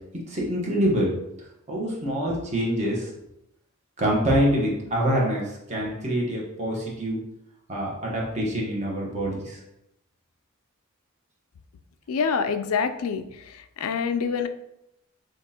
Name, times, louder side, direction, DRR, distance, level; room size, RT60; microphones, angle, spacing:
voice 1, 0.3-1.1 1.7-3.1 4.0-7.2 7.7-9.6, equal, 35° right, -4 dB, 1.1 m, -25 dB
voice 2, 12.1-14.5, left 6 dB, 80° left, 9 dB, 0.4 m, -26 dB
5.9 x 2.5 x 2.8 m, 0.84 s
head